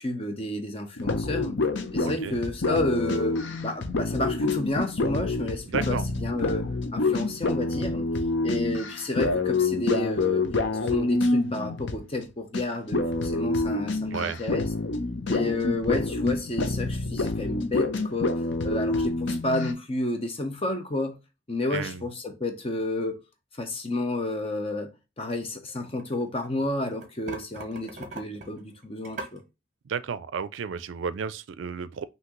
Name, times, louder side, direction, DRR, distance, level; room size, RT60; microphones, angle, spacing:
voice 1, 0.0-1.5 1.9-8.0 8.4-10.5 10.8-14.7 15.3-21.2 21.5-23.2 23.5-24.9 25.2-29.4, left 2 dB, 30° left, 0.8 m, -31 dB
sound 1, 1.0-12.2 12.5-12.6 12.9-19.7, left 3 dB, 75° left, 0.7 m, -27 dB
voice 2, 2.0-2.3 5.7-6.1 14.1-14.4 21.7-22.0 29.9-32.0, right 6 dB, 80° right, 0.4 m, -32 dB
sound 2, 25.7-26.5 26.9-29.4, right 2 dB, 40° right, 0.8 m, -40 dB
5.8 x 2.8 x 3.0 m
head